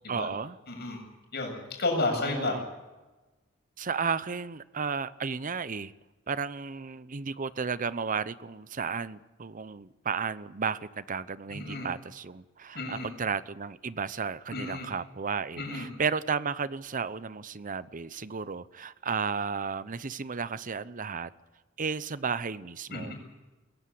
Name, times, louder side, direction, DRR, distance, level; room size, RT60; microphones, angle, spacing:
voice 1, 0.1-0.6 2.1-2.6 3.8-5.9 6.3-21.3 21.8-23.1, right 5 dB, 40° right, 16 dB, 0.8 m, -33 dB
voice 2, 0.7-1.0 1.3-2.6 11.5-11.9 12.7-13.1 14.5-14.9 15.6-15.9 22.9-23.1, left 2 dB, 55° left, 2 dB, 7.7 m, -32 dB
22.0 x 17.0 x 8.5 m, 1.2 s
head